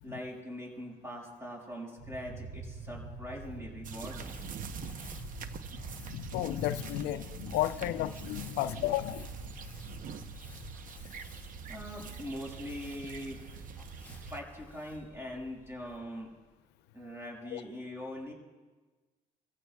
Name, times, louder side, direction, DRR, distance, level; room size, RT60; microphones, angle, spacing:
voice 1, 0.0-4.4 10.3-10.6 11.7-13.4 14.1-16.3 16.9-18.3, equal, 15° right, -1 dB, 5.8 m, -42 dB
sound 1, 2.0-10.8, right 3 dB, 70° right, 2.3 m, -46 dB
sound 2, 3.8-14.4, right 6 dB, 55° right, 0.9 m, -45 dB
Crumpling crinkling, 4.0-16.4, left 3 dB, 10° left, 4.8 m, -54 dB
voice 2, 6.0-9.5 17.5-17.6, left 14 dB, 85° left, 12 dB, 0.5 m, -33 dB
26.5 x 15.5 x 2.3 m, 1.3 s
cardioid pair, 110°, 17 cm